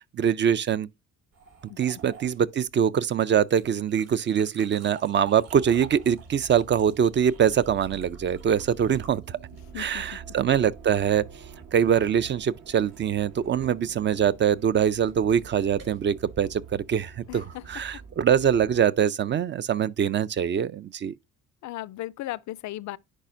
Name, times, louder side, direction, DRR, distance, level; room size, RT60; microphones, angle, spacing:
voice 1, 0.1-0.9 1.8-9.4 9.8-11.2 11.7-21.1, right 8 dB, 40° right, 0.4 m, -23 dB
sound 1, 1.3-10.0 11.7-17.4, right 5 dB, 55° right, 3.7 m, -50 dB
sound 2, 5.5-18.8, right 5 dB, 75° right, 1.4 m, -46 dB
voice 2, 9.7-10.2 17.3-17.6 21.6-23.0, left 15 dB, 70° left, 0.4 m, -36 dB
10.0 x 4.1 x 2.5 m
cardioid pair, 90°, 30 cm